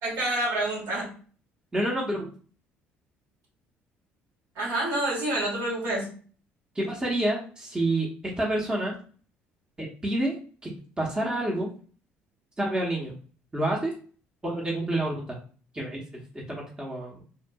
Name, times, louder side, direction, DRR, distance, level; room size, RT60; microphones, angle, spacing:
voice 1, 0.0-1.1 4.5-6.1, right 1 dB, 75° right, -4 dB, 1.4 m, -28 dB
voice 2, 1.7-2.3 6.7-9.0 9.8-10.4 10.6-11.7 12.6-13.1 13.5-13.9 14.4-15.2 15.7-16.0 16.3-17.2, right 1 dB, 15° right, -3 dB, 0.9 m, -28 dB
2.7 x 2.4 x 2.3 m, 0.40 s
hypercardioid pair, 65°, 5 cm